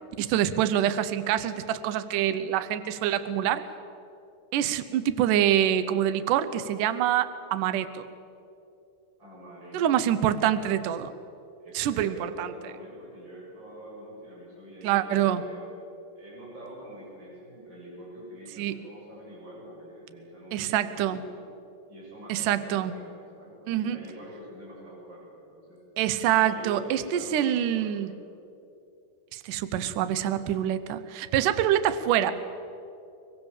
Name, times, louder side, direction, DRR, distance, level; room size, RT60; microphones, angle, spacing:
voice 1, 0.2-3.7 4.5-8.1 9.7-11.1 11.7-12.5 14.8-15.4 18.6-18.8 20.5-21.2 22.3-22.9 23.7-24.0 26.0-28.1 29.3-32.3, right 11 dB, 80° right, 12 dB, 1.9 m, -25 dB
voice 2, 9.2-10.0 10.3-10.7 11.6-15.8 16.1-21.4 21.9-25.8 26.3-28.0, right 1 dB, 25° right, -5 dB, 8.1 m, -45 dB
23.5 x 22.5 x 7.4 m, 2.7 s
omnidirectional pair, 5.0 m